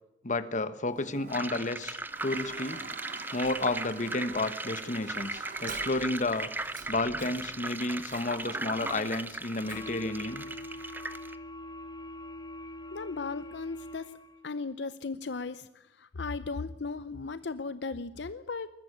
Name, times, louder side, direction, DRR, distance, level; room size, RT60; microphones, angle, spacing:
voice 1, 0.2-2.8 3.3-6.5 6.9-10.4, left 2 dB, 40° left, 12 dB, 1.3 m, -31 dB
Toilet flush, 0.9-10.1, right 5 dB, 45° right, 1.2 m, -46 dB
sound 1, 1.3-11.3, right 2 dB, 10° right, 0.8 m, -38 dB
sound 2, 9.6-14.5, left 1 dB, 20° left, 1.0 m, -43 dB
voice 2, 12.9-14.2 14.4-18.7, left 4 dB, 70° left, 13 dB, 0.7 m, -36 dB
21.0 x 13.0 x 9.9 m, 0.85 s
head